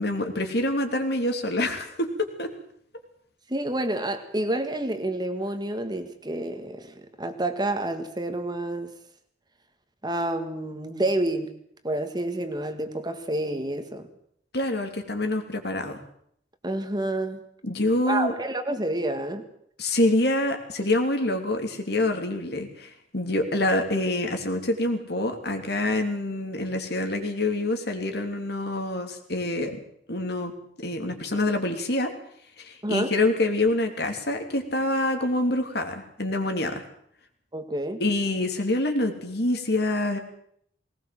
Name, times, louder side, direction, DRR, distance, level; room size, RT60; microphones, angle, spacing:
voice 1, 0.0-2.5 14.5-16.0 17.6-18.3 19.8-29.8 30.1-30.5 30.8-32.1 32.6-36.8 38.0-40.2, left 2 dB, 60° left, 5 dB, 3.1 m, -26 dB
voice 2, 3.5-8.9 10.0-11.5 11.8-14.1 16.6-17.4 18.1-19.5 32.8-33.1 37.5-38.0, right 1 dB, 25° right, 8 dB, 1.8 m, -29 dB
19.5 x 19.0 x 7.7 m, 0.66 s
head